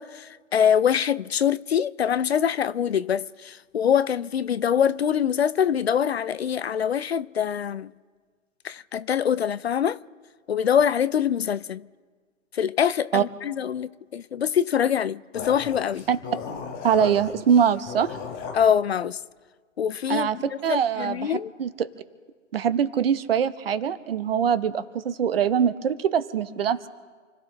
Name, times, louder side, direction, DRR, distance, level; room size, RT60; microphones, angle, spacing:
voice 1, 0.0-7.9 8.6-10.0 10.5-11.8 12.5-16.0 18.5-19.2 19.8-21.5, left 8 dB, 55° left, 0.5 m, -24 dB
sound 1, 15.3-18.7, left 6 dB, 20° left, 1.4 m, -36 dB
voice 2, 16.8-18.1 20.1-20.4 20.6-21.9 22.5-26.9, right 8 dB, 50° right, 1.1 m, -23 dB
29.0 x 15.5 x 3.3 m
figure-of-eight pair, 130°, 38 cm